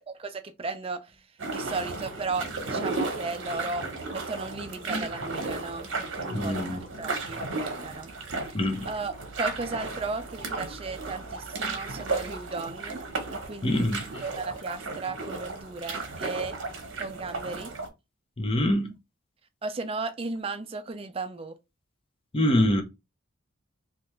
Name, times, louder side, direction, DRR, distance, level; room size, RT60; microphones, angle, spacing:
voice 1, 0.1-1.0 1.5-3.9 4.1-8.1 8.9-13.0 13.3-13.9 14.2-16.6 17.0-17.7 19.6-21.6, right 3 dB, 30° right, 0.4 m, -35 dB
sound 1, 1.4-17.9, right 3 dB, 65° right, 0.9 m, -34 dB
voice 2, 6.3-6.8 8.5-8.9 13.6-14.0 18.4-18.9 22.3-22.8, left 1 dB, 25° left, 0.6 m, -24 dB
3.2 x 2.4 x 3.1 m
head